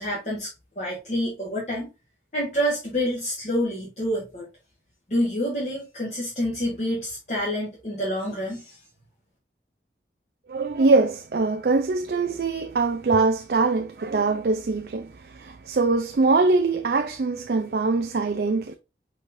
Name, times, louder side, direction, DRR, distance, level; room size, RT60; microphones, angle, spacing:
voice 1, 0.0-1.9 2.3-4.5 5.1-8.8, equal, 40° left, 1.4 m, -28 dB
voice 2, 10.5-18.8, right 3 dB, 60° right, 0.4 m, -23 dB
4.7 x 4.2 x 2.5 m
head